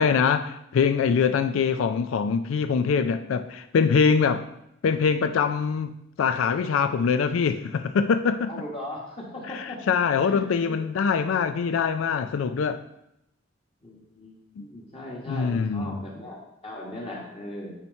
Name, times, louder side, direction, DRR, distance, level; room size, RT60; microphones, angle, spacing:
voice 1, 0.0-4.5 4.8-8.5 9.5-12.8 14.6-14.7 15.3-16.0, left 6 dB, 85° left, 10 dB, 0.4 m, -23 dB
voice 2, 8.5-9.8 10.3-10.8 13.8-17.7, left 1 dB, 30° left, -3 dB, 1.5 m, -38 dB
8.8 x 3.0 x 5.2 m, 0.80 s
head